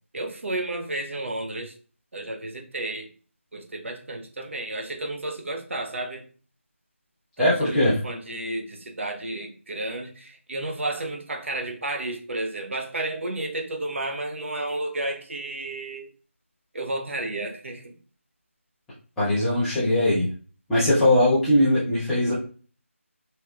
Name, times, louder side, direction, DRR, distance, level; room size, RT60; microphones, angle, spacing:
voice 1, 0.1-1.7 2.1-3.1 3.5-6.2 7.4-16.1 16.7-18.0, right 2 dB, 65° right, 3 dB, 0.7 m, -32 dB
voice 2, 7.4-8.0 19.2-20.3 20.7-22.3, left 1 dB, ahead, -13 dB, 0.3 m, -20 dB
3.1 x 2.8 x 2.3 m, 0.40 s
figure-of-eight pair, 170°, 7 cm